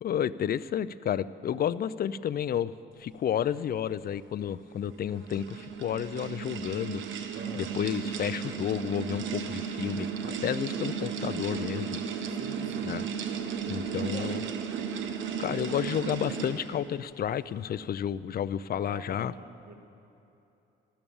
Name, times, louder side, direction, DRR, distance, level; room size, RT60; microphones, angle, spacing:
voice 1, 0.0-2.7 3.0-12.0 12.8-13.0 13.7-14.5 15.4-19.3, left 9 dB, 50° left, 17 dB, 0.5 m, -31 dB
sound 1, 4.7-16.9, right 6 dB, 75° right, 1.1 m, -35 dB
voice 2, 7.3-7.7 12.4-12.9 13.8-14.5 18.7-19.7, right 3 dB, 45° right, 3 dB, 2.0 m, -43 dB
14.5 x 12.5 x 7.1 m, 2.9 s
cardioid pair, 90°, 20 cm